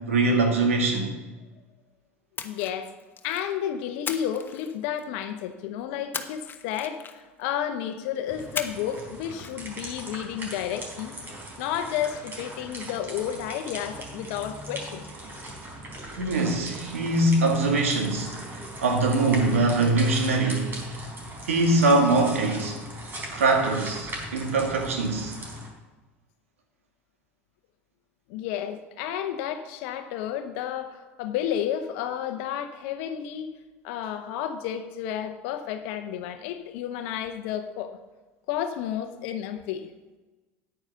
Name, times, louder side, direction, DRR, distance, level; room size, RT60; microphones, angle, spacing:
voice 1, 0.1-1.1 16.2-18.4 18.8-20.7 21.5-22.8 23.3-25.4, right 2 dB, 85° right, 3 dB, 2.0 m, -22 dB
voice 2, 2.4-2.9 3.2-11.2 11.6-15.1 28.3-33.5 33.8-37.9 38.5-39.9, left 10 dB, 65° left, 8 dB, 0.8 m, -31 dB
Splash splatter, 2.4-3.5 4.1-5.2 6.1-7.4 8.6-9.0 9.3-9.5, left 6 dB, 30° left, 1.1 m, -37 dB
sound 1, 8.3-25.7, right 1 dB, 30° right, 4.1 m, -39 dB
9.4 x 9.0 x 5.7 m, 1.2 s
hypercardioid pair, 80°, 7 cm